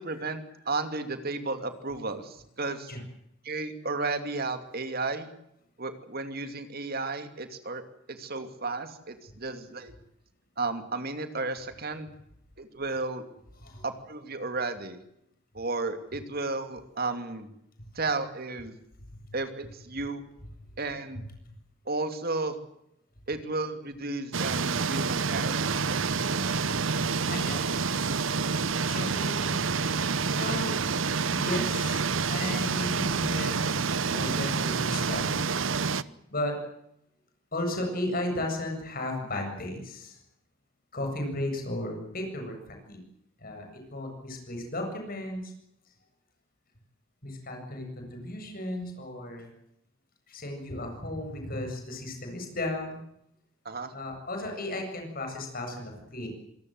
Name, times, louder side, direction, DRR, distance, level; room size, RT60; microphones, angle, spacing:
voice 1, 0.0-2.9 3.4-5.3 5.8-9.9 10.6-12.1 12.6-13.2 13.8-15.0 15.5-17.5 17.9-18.8 19.3-20.2 20.8-21.2 21.9-22.6 23.3-26.7 53.6-53.9, right 3 dB, 50° right, 8 dB, 2.7 m, -33 dB
sound 1, 24.3-36.0, right 5 dB, 70° right, 0.9 m, -28 dB
voice 2, 26.7-29.6 30.4-30.7 31.3-32.0 32.3-33.8 34.1-35.5 36.3-36.5 37.5-40.2 40.9-43.0 43.4-45.5 47.2-49.5 50.3-53.0 53.9-56.3, left 1 dB, 45° left, 3 dB, 7.8 m, -35 dB
26.5 x 18.5 x 7.9 m, 0.79 s
head